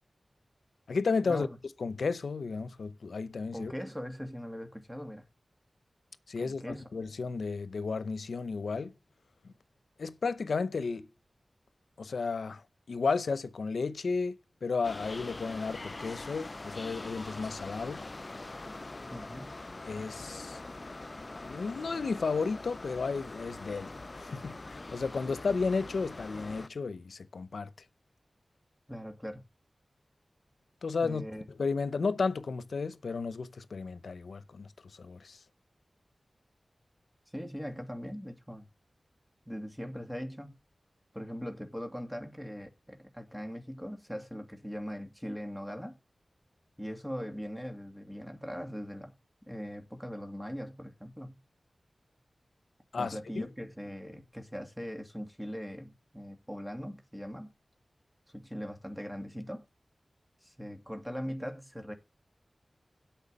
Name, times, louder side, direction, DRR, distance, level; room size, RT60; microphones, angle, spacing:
voice 1, 0.9-1.5 1.8-3.7 6.3-8.9 9.4-9.5 10.0-11.1 12.0-12.6 12.9-18.0 19.8-20.6 21.4-23.9 24.2-27.7 30.8-31.2 31.6-34.7 35.0-35.4 52.9-53.5, left 4 dB, 90° left, 0.7 m, -33 dB
voice 2, 3.5-5.2 6.4-6.8 19.1-19.5 28.9-29.4 31.0-31.4 37.3-38.7 39.5-40.5 41.1-46.0 46.8-49.1 49.5-51.4 53.0-57.5 58.3-59.7 60.4-61.9, equal, 5° right, 2.4 m, -40 dB
sound 1, 14.8-26.7, left 2 dB, 45° left, 0.5 m, -43 dB
8.3 x 5.8 x 7.4 m
wide cardioid pair, 50°, 0 cm